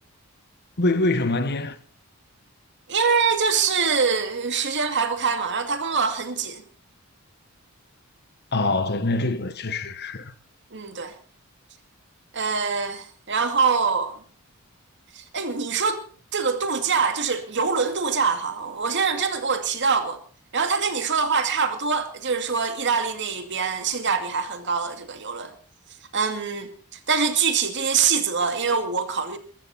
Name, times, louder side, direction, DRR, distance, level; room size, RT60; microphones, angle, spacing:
voice 1, 0.8-1.8 8.5-10.3, left 2 dB, 50° left, 1.5 m, -24 dB
voice 2, 2.9-6.6 10.7-11.1 12.3-14.2 15.1-16.0 16.3-20.2 20.5-25.5 26.1-26.7 27.1-29.4, right 5 dB, 55° right, 2.3 m, -24 dB
21.5 x 14.0 x 4.3 m
head